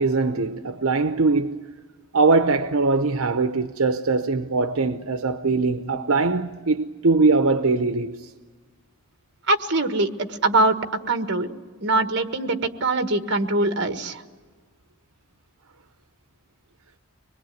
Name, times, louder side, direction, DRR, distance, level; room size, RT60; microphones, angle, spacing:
voice 1, 0.0-1.6 2.1-8.3, right 3 dB, 75° right, 0.8 m, -21 dB
voice 2, 9.5-10.7 11.1-11.5 11.8-14.2, right 2 dB, 50° right, 1.5 m, -22 dB
24.5 x 21.0 x 9.3 m
head